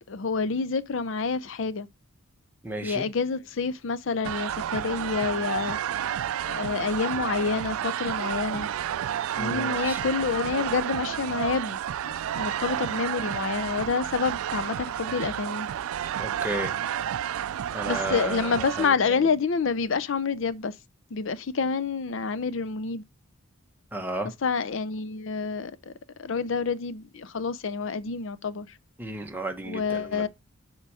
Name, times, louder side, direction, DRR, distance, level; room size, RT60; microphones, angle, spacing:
voice 1, 0.1-1.9 2.8-5.8 6.5-8.7 9.4-11.8 12.0-15.7 17.9-20.7 21.1-23.0 24.4-25.9 26.2-28.7 29.7-30.3, left 5 dB, 65° left, 0.5 m, -28 dB
voice 2, 2.6-3.1 9.4-10.0 16.2-16.8 17.7-19.3 23.9-24.3 29.0-30.2, right 1 dB, 10° right, 1.1 m, -34 dB
sound 1, 4.2-18.9, right 10 dB, 85° right, 0.3 m, -31 dB
6.8 x 4.5 x 4.8 m
head